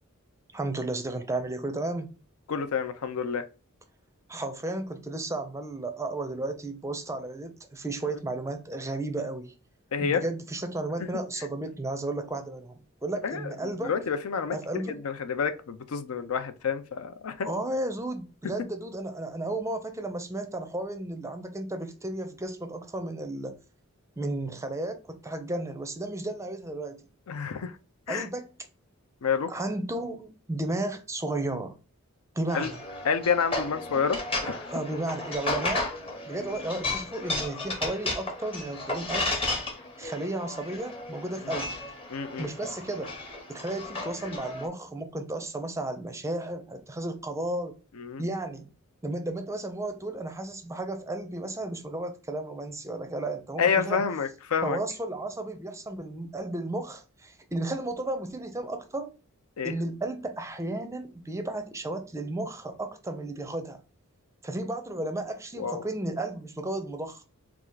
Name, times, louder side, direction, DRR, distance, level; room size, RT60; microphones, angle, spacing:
voice 1, 0.5-2.1 4.3-9.5 10.0-13.9 14.5-15.0 17.5-23.6 24.2-27.0 28.1-28.5 29.5-31.8 32.4-32.8 34.7-35.9 36.3-39.4 40.0-41.8 42.4-43.2 43.5-47.7 48.2-48.7 49.0-54.0 54.6-59.1 59.6-63.8 64.4-67.2, right 2 dB, 15° right, 0.5 m, -33 dB
voice 2, 2.5-3.4 9.9-10.2 13.2-13.4 13.8-14.6 14.9-17.5 27.3-27.7 28.1-28.3 29.2-29.5 32.5-32.7 33.0-34.7 42.1-42.5 48.0-48.2 53.6-54.8 59.6-59.7 65.6-65.9, left 6 dB, 70° left, 0.5 m, -28 dB
sound 1, 32.5-44.7, left 2 dB, 25° left, 0.8 m, -34 dB
3.5 x 2.4 x 4.5 m
head